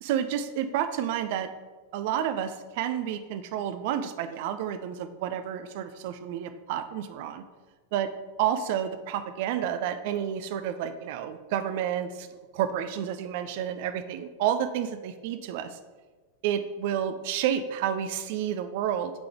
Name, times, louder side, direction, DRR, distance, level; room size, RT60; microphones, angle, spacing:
voice 1, 0.0-1.5 1.9-7.4 7.9-8.1 8.4-15.8 16.4-19.1, right 9 dB, 50° right, 9 dB, 0.5 m, -30 dB
6.5 x 3.8 x 4.5 m, 1.3 s
figure-of-eight pair, 90°, 0 cm